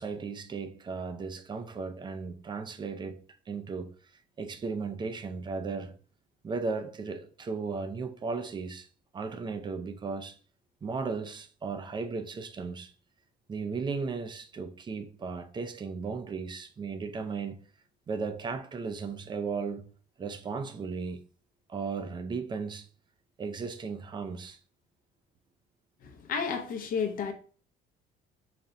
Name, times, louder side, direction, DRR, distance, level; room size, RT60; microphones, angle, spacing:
voice 1, 0.0-3.2 3.5-3.9 4.4-6.0 6.4-8.9 9.1-10.4 10.8-12.9 13.5-17.6 18.1-19.8 20.2-21.2 21.7-22.9 23.4-24.6, right 4 dB, 25° right, 0.5 m, -35 dB
voice 2, 26.2-27.3, left 6 dB, 55° left, 0.6 m, -31 dB
4.1 x 2.2 x 3.7 m
cardioid pair, 110°, 17 cm